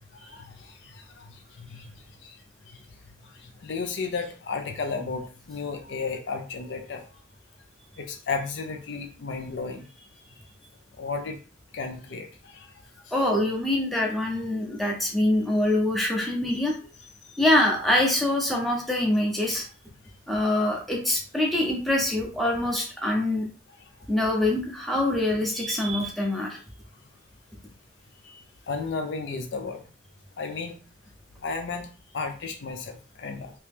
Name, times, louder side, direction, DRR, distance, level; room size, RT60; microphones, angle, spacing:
voice 1, 0.2-1.8 2.2-2.3 3.4-7.0 8.0-9.9 11.0-11.4 11.7-12.7 13.1-13.2 28.7-29.8 30.4-30.7 31.4-31.9 32.1-33.5, left 4 dB, 65° left, 5 dB, 0.5 m, -33 dB
voice 2, 13.1-16.9 17.4-19.6 20.3-23.5 24.1-26.6, left 1 dB, ahead, -2 dB, 0.7 m, -24 dB
2.9 x 2.8 x 3.5 m, 0.37 s
head